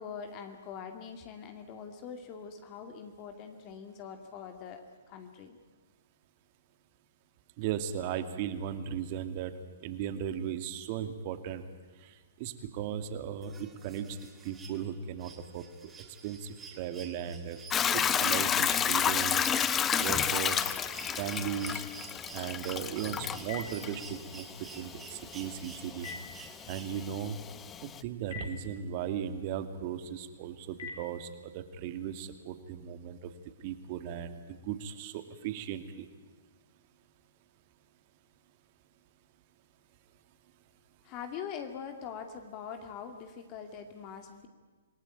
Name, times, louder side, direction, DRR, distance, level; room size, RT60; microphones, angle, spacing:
voice 1, 0.0-4.8 5.1-5.6 41.0-44.5, left 7 dB, 35° left, 6 dB, 2.4 m, -43 dB
voice 2, 7.6-9.5 9.8-11.6 12.0-14.2 14.4-15.9 16.2-17.6 17.9-19.5 20.0-20.7 21.2-21.8 22.3-24.4 24.7-26.1 26.7-27.4 27.8-33.3 33.6-36.1, right 9 dB, 40° right, 9 dB, 2.4 m, -37 dB
sound 1, 13.4-27.3 28.8-28.9, right 5 dB, 15° right, 3.1 m, -51 dB
Hiss / Toilet flush / Trickle dribble, 17.7-28.0, left 8 dB, 20° left, 0.9 m, -31 dB
Telephone, 22.8-31.6, left 4 dB, 60° left, 5.7 m, -50 dB
27.0 x 19.0 x 9.3 m, 1.4 s
hypercardioid pair, 125°, 0 cm